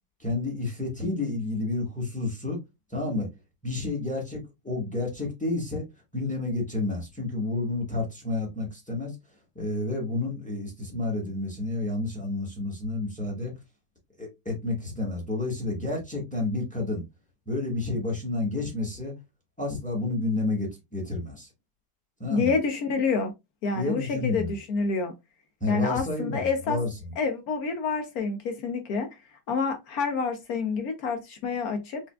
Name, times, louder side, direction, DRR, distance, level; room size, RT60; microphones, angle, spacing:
voice 1, 0.2-2.6 2.9-3.3 3.6-5.8 6.1-9.1 9.5-13.5 14.2-17.0 17.5-19.1 19.6-21.5 22.2-22.5 23.7-24.5 25.6-27.1, left 2 dB, 5° left, 0.8 m, -30 dB
voice 2, 22.3-23.3 23.6-25.1 25.7-26.8 27.2-29.1 29.5-32.0, left 4 dB, 65° left, 1.0 m, -28 dB
5.7 x 2.4 x 2.2 m
omnidirectional pair, 2.2 m